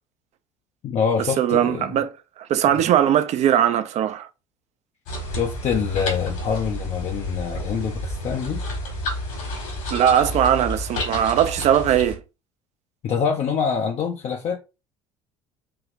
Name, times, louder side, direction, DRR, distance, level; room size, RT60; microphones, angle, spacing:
voice 1, 0.8-2.0 2.7-2.8 5.3-8.6 13.0-14.6, left 6 dB, 40° left, 0.6 m, -25 dB
voice 2, 1.4-2.1 2.4-4.3 9.9-12.2, right 10 dB, 40° right, 0.5 m, -20 dB
sound 1, 5.1-12.2, equal, 65° left, 1.7 m, -30 dB
4.8 x 2.7 x 2.5 m
figure-of-eight pair, 60°, 17 cm